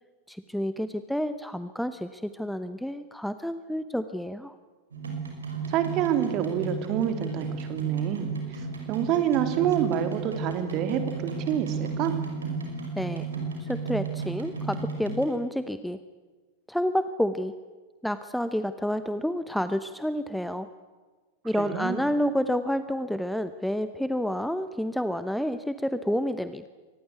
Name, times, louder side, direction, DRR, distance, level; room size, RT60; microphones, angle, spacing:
voice 1, 0.3-4.6 13.0-13.3 13.6-16.0 16.7-17.5 18.0-20.7 21.4-26.7, equal, ahead, 12 dB, 0.9 m, -29 dB
sound 1, 4.9-15.3, right 4 dB, 70° right, 5.6 m, -34 dB
voice 2, 5.7-12.1 21.6-22.0, right 9 dB, 40° right, 8 dB, 3.0 m, -27 dB
25.0 x 19.5 x 8.4 m, 1.4 s
figure-of-eight pair, 90°, 0 cm